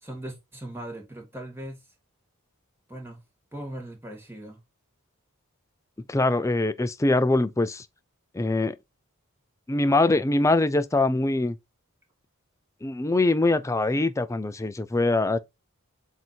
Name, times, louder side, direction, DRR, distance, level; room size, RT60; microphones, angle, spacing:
voice 1, 0.0-1.8 2.9-3.2 3.5-4.6, right 1 dB, 10° right, 1.8 m, -39 dB
voice 2, 6.1-7.8 8.3-8.7 9.7-11.6 12.8-15.4, left 2 dB, 15° left, 0.4 m, -23 dB
7.6 x 2.8 x 4.5 m
head